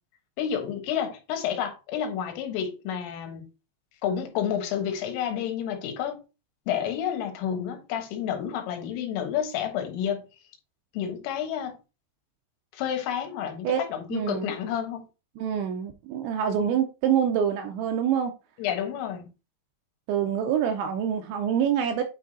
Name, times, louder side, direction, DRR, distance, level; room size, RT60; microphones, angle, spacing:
voice 1, 0.4-3.4 4.0-6.2 6.7-10.2 10.9-11.7 12.7-15.0 18.6-19.3, left 9 dB, 80° left, 3.8 m, -30 dB
voice 2, 14.1-14.5 15.4-18.3 20.1-22.0, right 8 dB, 80° right, 2.8 m, -26 dB
9.3 x 3.5 x 4.0 m
omnidirectional pair, 5.9 m